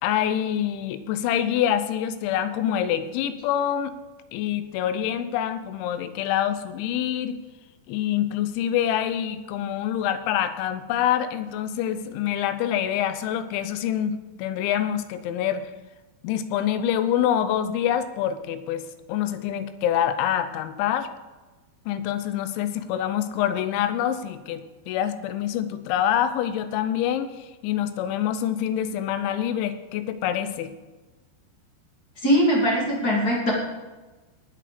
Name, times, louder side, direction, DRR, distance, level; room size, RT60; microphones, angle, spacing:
voice 1, 0.0-3.9 4.3-7.4 7.9-15.7 16.2-21.1 21.9-30.7, left 10 dB, 90° left, 11 dB, 3.2 m, -26 dB
voice 2, 32.2-33.5, equal, 25° left, -3 dB, 2.3 m, -21 dB
19.0 x 7.6 x 5.1 m, 1.2 s
omnidirectional pair, 5.2 m